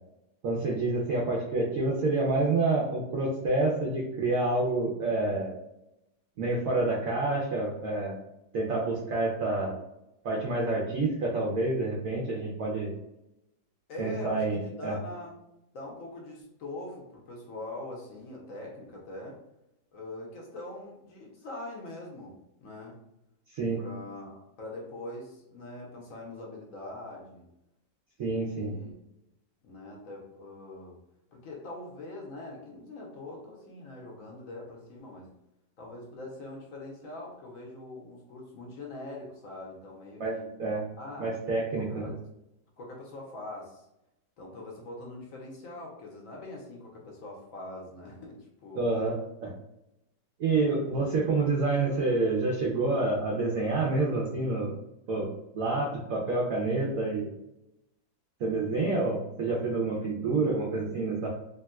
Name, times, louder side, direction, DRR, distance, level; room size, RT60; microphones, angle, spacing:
voice 1, 0.4-5.5 6.4-8.2 8.5-9.8 10.2-12.9 14.0-14.9 23.5-23.8 28.2-28.7 40.2-40.9 41.2-42.1 48.7-49.2 49.4-49.5 50.4-54.7 55.1-55.3 55.5-57.3 58.4-61.3, right 3 dB, 70° right, -3 dB, 0.8 m, -28 dB
voice 2, 13.9-15.4 15.7-19.4 19.9-23.0 23.8-27.5 28.3-28.9 29.6-31.0 31.3-35.3 35.8-40.4 41.0-41.3 41.8-42.2 42.8-43.9 44.4-48.9 50.9-51.0, left 2 dB, 60° left, -2 dB, 0.9 m, -43 dB
3.5 x 2.6 x 2.2 m, 0.87 s
omnidirectional pair, 2.1 m